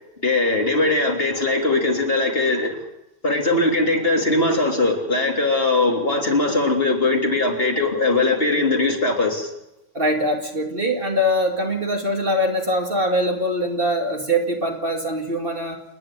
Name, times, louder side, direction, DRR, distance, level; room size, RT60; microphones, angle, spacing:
voice 1, 0.2-2.7 3.2-9.5, left 2 dB, 40° left, 2 dB, 3.6 m, -20 dB
voice 2, 9.9-15.8, equal, 35° right, 3 dB, 2.6 m, -23 dB
28.5 x 10.5 x 10.0 m, 0.86 s
omnidirectional pair, 1.6 m